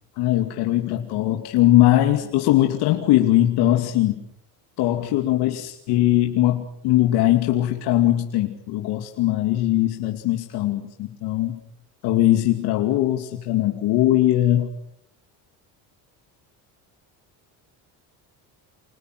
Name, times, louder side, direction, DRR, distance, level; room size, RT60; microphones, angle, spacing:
voice 1, 0.2-4.2 4.8-11.6 12.0-14.7, left 14 dB, 75° left, 4 dB, 2.6 m, -20 dB
29.5 x 27.5 x 6.2 m, 0.72 s
cardioid pair, 175°, 40 cm